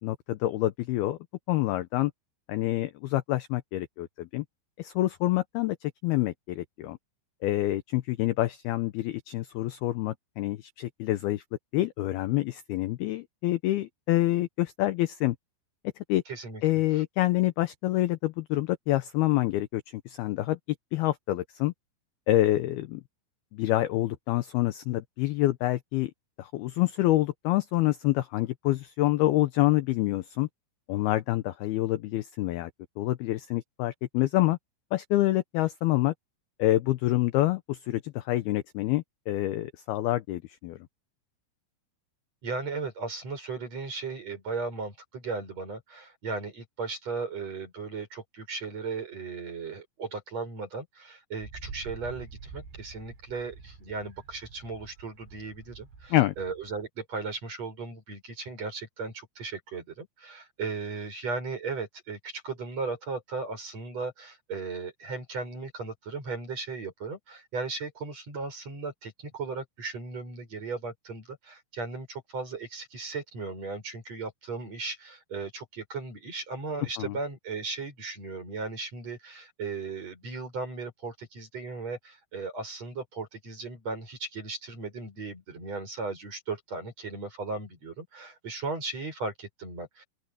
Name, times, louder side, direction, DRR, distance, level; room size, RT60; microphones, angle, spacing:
voice 1, 0.0-1.2 1.5-2.1 2.5-4.4 4.8-7.0 7.4-11.4 11.7-15.4 16.1-16.2 16.6-20.6 20.9-21.7 22.3-23.0 23.5-26.1 26.4-30.5 30.9-32.7 33.0-34.6 34.9-36.1 36.6-40.8 56.1-56.3 77.0-77.2, left 16 dB, 80° left, 2.3 m, -27 dB
voice 2, 16.3-17.0 42.4-90.0, right 4 dB, 35° right, 7.8 m, -36 dB
Wind, 51.4-56.9, right 5 dB, 80° right, 8.2 m, -47 dB
open air
omnidirectional pair, 5.3 m